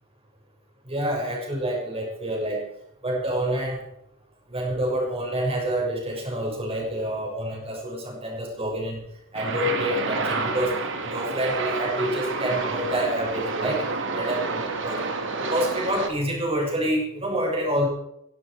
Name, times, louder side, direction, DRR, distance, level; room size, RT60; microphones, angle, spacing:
voice 1, 0.9-2.7 3.0-3.8 4.5-9.1 9.3-10.8 11.0-15.0 15.4-17.9, right 1 dB, 30° right, 0 dB, 6.4 m, -27 dB
sound 1, 9.3-16.1, right 3 dB, 60° right, 2.7 m, -29 dB
17.0 x 16.0 x 5.0 m, 0.78 s
head